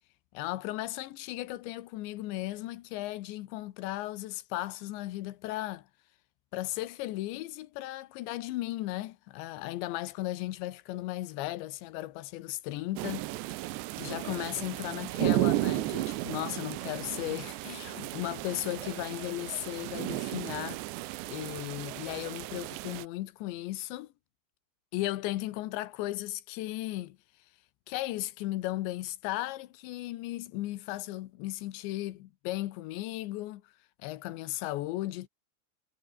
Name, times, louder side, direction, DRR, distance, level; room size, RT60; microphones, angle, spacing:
voice 1, 0.3-5.9 6.5-20.8 21.3-24.1 24.9-27.2 27.9-33.6 34.0-35.3, left 16 dB, 90° left, 3.4 m, -36 dB
sound 1, 13.0-23.0, right 19 dB, 85° right, 3.0 m, -34 dB
omnidirectional pair, 5.0 m